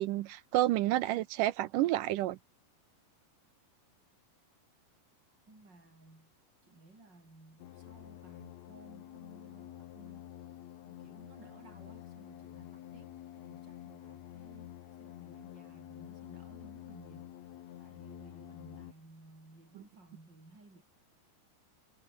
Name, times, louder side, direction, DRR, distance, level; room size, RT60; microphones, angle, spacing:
voice 1, 0.0-2.4, right 15 dB, 75° right, 2.2 m, -30 dB
voice 2, 5.5-6.3 6.6-10.3 10.9-17.3 17.8-20.8, right 2 dB, 30° right, 8.6 m, -58 dB
sound 1, 7.6-18.9, left 12 dB, 60° left, 2.1 m, -49 dB
omnidirectional pair, 4.0 m